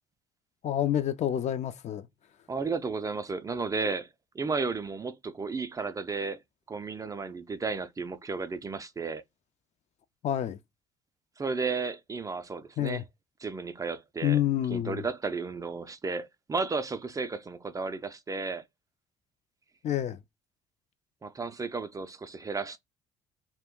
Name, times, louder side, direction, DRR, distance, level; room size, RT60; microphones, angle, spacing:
voice 1, 0.6-2.1 10.2-10.6 12.8-13.0 14.2-15.0 19.8-20.2, left 11 dB, 50° left, 0.4 m, -28 dB
voice 2, 2.5-4.1 4.3-6.4 6.7-9.2 11.4-13.0 13.4-14.4 14.7-18.6 21.2-22.8, right 4 dB, 25° right, 0.4 m, -33 dB
2.2 x 2.1 x 3.6 m
supercardioid pair, 65°, 15 cm